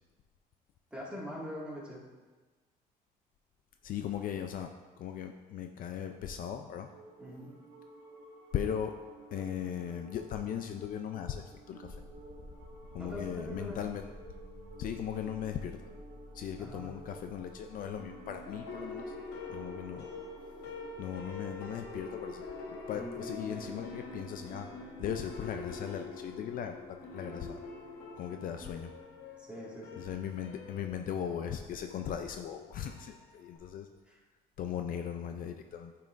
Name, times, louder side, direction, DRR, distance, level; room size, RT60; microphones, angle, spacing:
voice 1, 0.9-2.0 7.2-7.5 13.0-13.8 16.6-16.9 22.9-23.9 29.4-30.0, equal, 5° right, -5 dB, 1.9 m, -43 dB
voice 2, 3.8-4.7 5.0-6.9 8.5-9.0 9.3-12.0 12.9-14.1 14.8-15.9 16.3-19.2 19.5-20.1 21.0-22.4 22.7-24.7 25.0-27.6 28.2-28.9 30.0-33.9 34.6-35.9, left 9 dB, 55° left, 6 dB, 0.4 m, -38 dB
sound 1, 6.0-23.6, right 2 dB, 75° right, 1.0 m, -53 dB
sound 2, 11.8-28.7, equal, 35° left, 1.5 m, -54 dB
sound 3, 18.0-33.6, left 3 dB, 80° left, 1.2 m, -45 dB
8.9 x 5.5 x 2.5 m, 1.3 s
cardioid pair, 110°, 17 cm